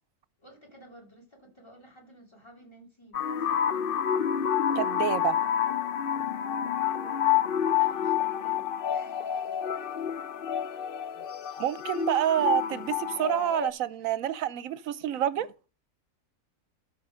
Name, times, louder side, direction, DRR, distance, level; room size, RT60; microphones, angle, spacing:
voice 1, 0.4-4.0 7.7-9.4 11.8-12.0, right 1 dB, 20° left, 3.1 m, -54 dB
sound 1, 3.1-13.7, left 9 dB, 55° left, 0.6 m, -28 dB
voice 2, 4.8-5.5 11.6-15.5, right 11 dB, 70° right, 1.0 m, -28 dB
13.0 x 4.5 x 5.0 m
omnidirectional pair, 1.5 m